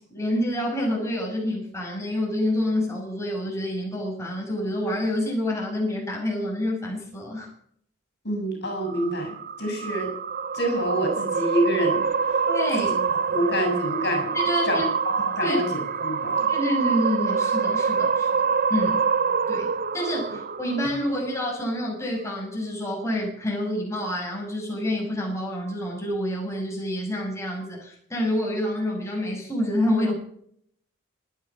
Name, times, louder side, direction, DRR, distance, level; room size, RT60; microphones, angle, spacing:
voice 1, 0.0-7.5 12.5-12.9 14.3-14.9 15.4-15.6 16.5-18.3 18.7-19.1 19.5-30.1, left 1 dB, 15° left, -1 dB, 6.2 m, -27 dB
voice 2, 8.2-10.1 10.5-12.4 12.7-14.3 14.6-16.5 20.3-20.4, equal, 55° left, 4 dB, 6.9 m, -27 dB
sound 1, 8.8-21.3, right 6 dB, 40° right, 0.7 m, -26 dB
25.0 x 9.3 x 6.0 m, 0.64 s
head